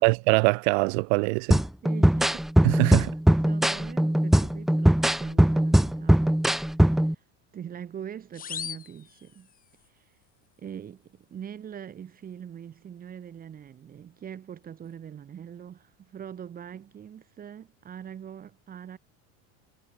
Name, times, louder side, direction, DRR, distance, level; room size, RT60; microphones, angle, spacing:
voice 1, 0.0-1.6 2.6-3.1, right 36 dB, 55° right, 2.5 m, -23 dB
sound 1, 1.5-7.1, right 1 dB, ahead, 0.5 m, -21 dB
voice 2, 1.8-2.5 3.5-7.2 7.5-9.5 9.8-10.2 10.6-19.0, right 9 dB, 20° right, 5.2 m, -42 dB
sound 2, 8.3-9.9, left 8 dB, 20° left, 6.4 m, -39 dB
supercardioid pair, 165°, 39 cm